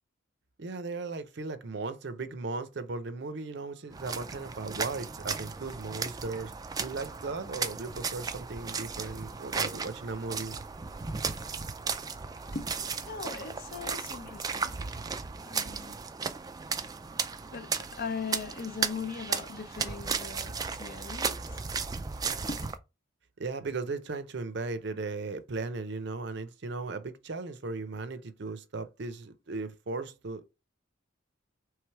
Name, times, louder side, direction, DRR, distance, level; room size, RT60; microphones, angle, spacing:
voice 1, 0.6-6.5 6.8-10.6 23.4-30.4, right 3 dB, 60° right, 0.6 m, -37 dB
sound 1, 3.9-22.8, right 5 dB, 20° right, 0.3 m, -35 dB
voice 2, 13.1-14.8 15.4-16.0 17.5-21.4 22.5-22.6, left 5 dB, 50° left, 0.6 m, -39 dB
3.3 x 3.2 x 4.5 m
head